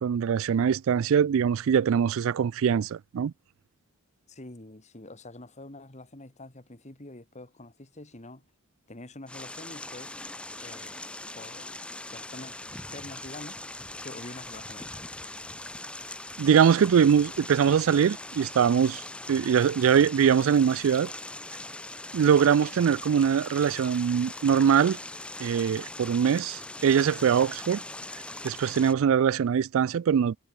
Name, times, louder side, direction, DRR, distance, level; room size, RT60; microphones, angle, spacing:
voice 1, 0.0-3.3 16.4-19.0 19.3-21.1 22.1-25.0 25.4-27.8 28.4-30.4, right 7 dB, 60° right, 0.3 m, -22 dB
voice 2, 4.3-8.5 8.9-11.8 12.1-13.6 14.0-15.2, left 2 dB, 30° left, 2.1 m, -46 dB
sound 1, 9.3-28.9, left 2 dB, 5° left, 0.4 m, -41 dB
head